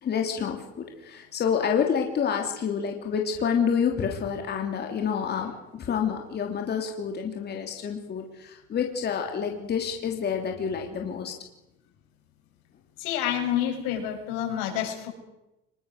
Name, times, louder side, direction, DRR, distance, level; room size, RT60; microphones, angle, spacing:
voice 1, 0.0-11.3, left 7 dB, 35° left, 2 dB, 3.1 m, -28 dB
voice 2, 13.0-15.1, left 10 dB, 85° left, 2 dB, 7.4 m, -28 dB
25.5 x 22.0 x 6.6 m, 0.93 s
cardioid pair, 145°, 31 cm